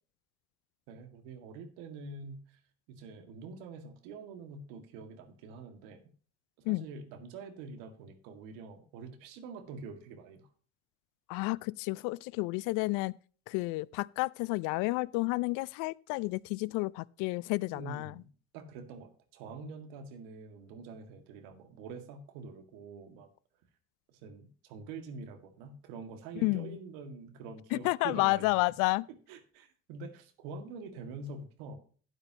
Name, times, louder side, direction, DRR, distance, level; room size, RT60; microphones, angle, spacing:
voice 1, 0.9-2.6 2.9-6.0 6.7-10.5 17.7-23.3 24.1-28.5 29.3-31.8, right 4 dB, 75° right, 2.0 m, -46 dB
voice 2, 11.3-13.1 13.5-18.1 26.4-26.8 27.7-29.1, left 23 dB, 65° left, 0.5 m, -31 dB
13.0 x 9.0 x 2.8 m
hypercardioid pair, 65°, 34 cm